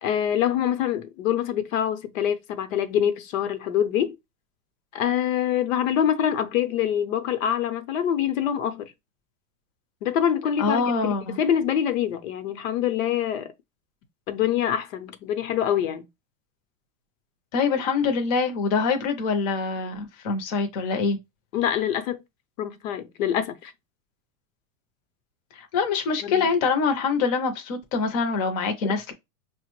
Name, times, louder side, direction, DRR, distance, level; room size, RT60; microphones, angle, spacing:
voice 1, 0.0-4.2 4.9-8.9 10.0-13.5 14.3-16.0 21.5-22.2 22.6-23.7 26.2-26.5, left 9 dB, 85° left, 0.7 m, -25 dB
voice 2, 10.6-11.4 17.5-21.2 25.5-29.1, left 5 dB, 30° left, 0.5 m, -24 dB
5.6 x 2.1 x 3.0 m
supercardioid pair, 175°, 39 cm